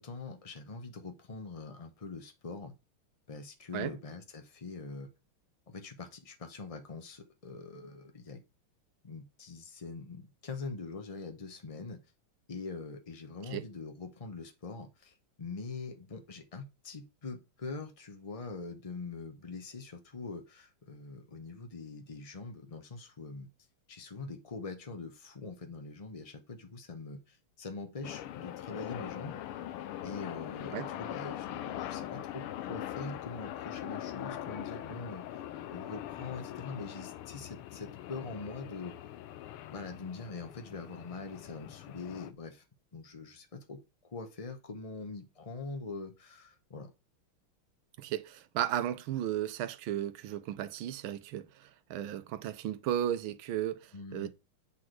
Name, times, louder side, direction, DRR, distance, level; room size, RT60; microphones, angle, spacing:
voice 1, 0.0-2.7 3.3-5.1 5.7-8.4 9.0-12.0 12.5-23.5 23.9-29.4 30.0-35.4 35.7-38.9 39.7-42.6 42.9-43.8 44.1-46.9 53.9-54.3, left 3 dB, 65° left, 0.3 m, -43 dB
sound 1, 28.0-42.3, left 12 dB, 90° left, 1.6 m, -42 dB
voice 2, 48.0-51.5 51.9-54.3, right 11 dB, 75° right, 1.5 m, -34 dB
8.3 x 4.3 x 4.6 m
omnidirectional pair, 2.3 m